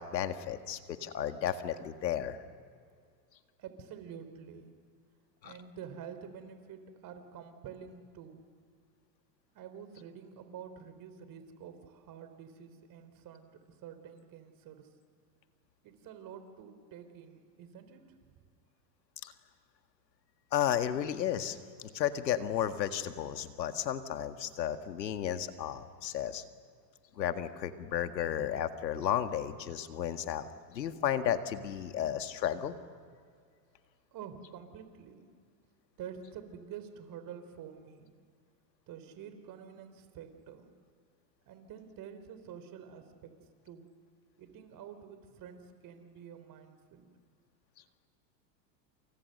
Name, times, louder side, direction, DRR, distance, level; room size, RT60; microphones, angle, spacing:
voice 1, 0.0-2.4 5.4-5.5 19.2-19.3 20.5-26.4 27.2-32.7, left 10 dB, 85° left, 8 dB, 1.9 m, -33 dB
voice 2, 3.6-4.7 5.4-8.5 9.5-14.9 15.8-18.3 34.1-35.3 36.0-38.1 38.9-40.7 41.5-43.3 43.6-43.9 44.4-47.1, right 8 dB, 40° right, 9 dB, 4.0 m, -48 dB
29.0 x 28.5 x 6.7 m, 2.1 s
hypercardioid pair, 110°, 49 cm